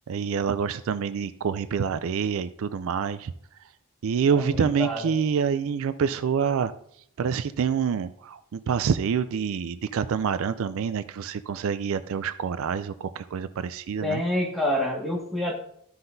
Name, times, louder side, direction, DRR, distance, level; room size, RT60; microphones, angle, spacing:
voice 1, 0.1-3.3 4.0-6.7 7.2-14.2, right 6 dB, 65° right, 12 dB, 0.3 m, -27 dB
voice 2, 4.3-5.1 14.0-15.5, left 1 dB, ahead, -2 dB, 1.7 m, -27 dB
13.5 x 5.8 x 2.7 m, 0.68 s
head